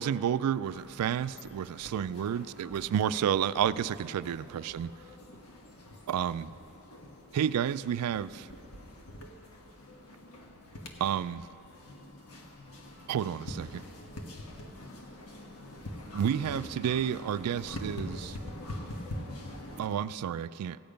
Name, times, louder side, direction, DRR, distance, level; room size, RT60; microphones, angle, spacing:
voice 1, 0.0-4.9 6.1-6.5 7.3-8.5 11.0-11.5 13.1-13.8 16.1-18.4 19.8-20.8, right 9 dB, 85° right, 16 dB, 0.3 m, -30 dB
sound 1, 0.6-19.9, left 1 dB, 75° left, 1.3 m, -45 dB
15.0 x 8.8 x 5.1 m, 3.0 s
head